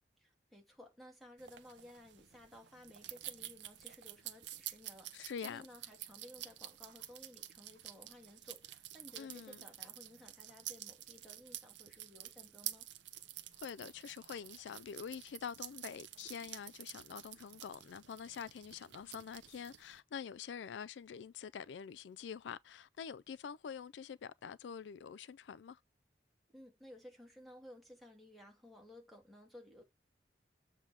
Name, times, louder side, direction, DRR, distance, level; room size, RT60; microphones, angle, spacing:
voice 1, 0.2-12.9 26.5-29.8, left 1 dB, ahead, 2.4 m, -57 dB
sound 1, 1.4-20.0, right 13 dB, 85° right, 0.8 m, -50 dB
voice 2, 5.1-5.6 9.2-9.6 13.5-25.8, left 7 dB, 85° left, 0.4 m, -46 dB
7.4 x 3.4 x 6.3 m
head